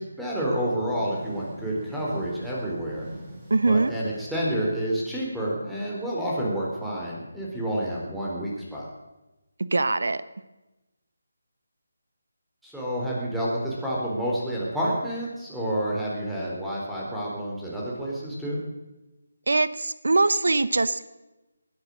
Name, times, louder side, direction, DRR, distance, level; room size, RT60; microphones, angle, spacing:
voice 1, 0.0-3.1 3.7-8.9 12.6-18.6, right 1 dB, ahead, -6 dB, 3.9 m, -29 dB
sound 1, 0.6-5.1, right 1 dB, 20° right, 6.2 m, -43 dB
voice 2, 3.5-3.9 9.6-10.2 19.5-21.1, right 3 dB, 70° right, 15 dB, 0.9 m, -22 dB
20.5 x 10.5 x 6.4 m, 1.0 s
figure-of-eight pair, 155°, 0 cm